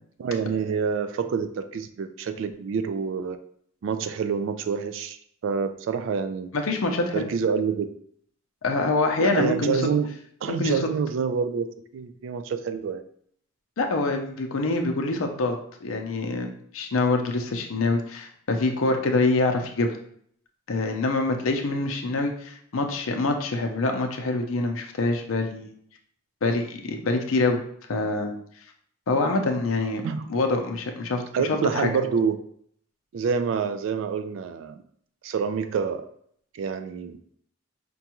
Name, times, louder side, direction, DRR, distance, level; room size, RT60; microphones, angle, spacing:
voice 1, 0.2-3.4 3.8-5.2 5.4-6.5 7.1-7.9 9.2-10.1 10.4-13.0 30.0-30.3 31.3-32.4 33.1-34.8 35.2-36.1 36.5-37.2, right 6 dB, 70° right, 9 dB, 0.3 m, -27 dB
voice 2, 6.5-7.3 8.6-9.8 10.5-10.8 13.8-20.0 20.7-25.7 26.4-27.6 27.9-28.3 29.1-31.2 31.5-31.9, left 2 dB, 90° left, 4 dB, 0.6 m, -25 dB
5.1 x 2.3 x 2.9 m, 0.64 s
head